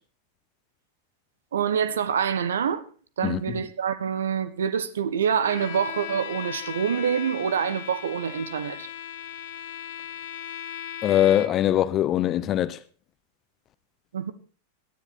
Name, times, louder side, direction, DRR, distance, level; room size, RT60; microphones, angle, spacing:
voice 1, 1.5-2.8 3.2-8.9 14.1-14.3, right 7 dB, 65° right, 1.4 m, -26 dB
voice 2, 3.2-3.6 11.0-12.8, left 11 dB, 30° left, 1.0 m, -22 dB
Bowed string instrument, 5.4-11.8, left 10 dB, 55° left, 0.9 m, -37 dB
18.0 x 13.0 x 4.4 m
figure-of-eight pair, 90°, 0 cm